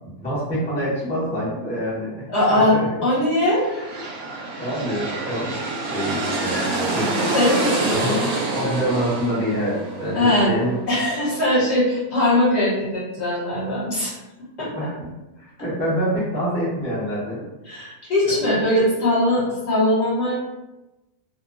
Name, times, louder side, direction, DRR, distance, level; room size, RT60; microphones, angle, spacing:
voice 1, 0.0-2.2 2.5-2.8 3.8-3.9 4.6-5.6 5.9-7.1 7.9-10.7 14.6-15.1 15.4-17.4 18.3-18.4, equal, 10° left, -9 dB, 0.4 m, -26 dB
voice 2, 2.3-3.6 7.3-8.2 10.2-10.6 10.9-14.1 14.6-14.7 17.6-20.3, left 1 dB, 45° left, -8 dB, 1.0 m, -20 dB
sound 1, 3.5-11.2, right 2 dB, 70° right, 0.9 m, -27 dB
2.8 x 2.2 x 2.4 m, 1.0 s
omnidirectional pair, 1.8 m